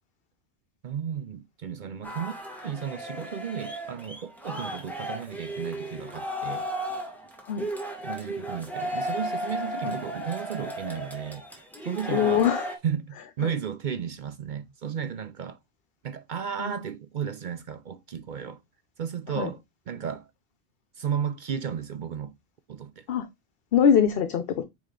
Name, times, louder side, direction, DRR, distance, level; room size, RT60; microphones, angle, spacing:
voice 1, 0.8-6.7 8.0-12.5 12.8-15.6 16.0-18.6 19.0-19.6 19.9-20.3 20.9-22.4 22.7-23.1, right 8 dB, 55° right, 0.6 m, -34 dB
sound 1, 2.0-12.8, equal, ahead, 1.5 m, -35 dB
voice 2, 12.1-12.7 13.4-13.5 16.6-16.8 19.4-19.5 23.1-23.3 23.7-24.6, left 8 dB, 60° left, 0.8 m, -23 dB
8.7 x 3.0 x 3.7 m
omnidirectional pair, 1.1 m